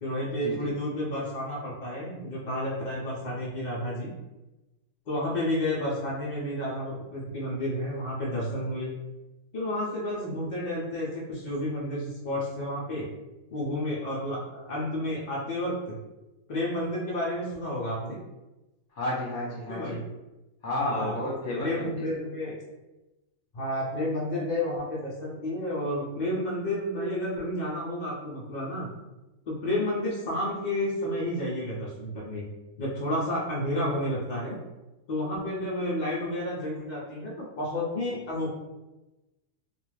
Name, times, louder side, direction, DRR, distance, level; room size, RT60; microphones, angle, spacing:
voice 1, 0.0-4.1 5.1-8.9 9.5-13.1 13.5-15.9 16.5-18.2 19.7-20.0 20.8-21.2 21.6-22.6 23.5-28.9 29.5-32.4 32.8-34.6 35.1-38.5, left 1 dB, 75° left, -6 dB, 0.4 m, -31 dB
voice 2, 19.0-20.0 20.6-22.1, left 1 dB, 35° left, -6 dB, 0.7 m, -31 dB
2.4 x 2.3 x 3.2 m, 1.0 s
omnidirectional pair, 1.6 m